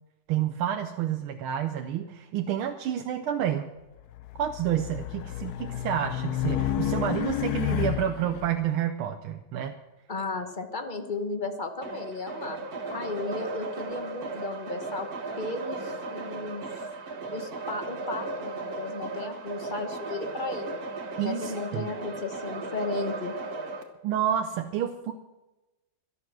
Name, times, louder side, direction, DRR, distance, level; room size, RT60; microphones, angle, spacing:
voice 1, 0.3-3.7 4.3-9.8 21.2-21.9 24.0-25.1, right 10 dB, 90° right, 5 dB, 1.6 m, -29 dB
Race car auto racing, 4.1-8.5, left 12 dB, 75° left, 0.9 m, -30 dB
voice 2, 10.1-12.6 12.9-15.1 15.4-16.7 17.3-20.7 21.2-23.3, left 3 dB, 30° left, 6 dB, 0.9 m, -35 dB
sound 1, 11.8-23.8, right 3 dB, 50° right, 1.8 m, -36 dB
12.5 x 12.0 x 6.1 m, 1.0 s
omnidirectional pair, 2.3 m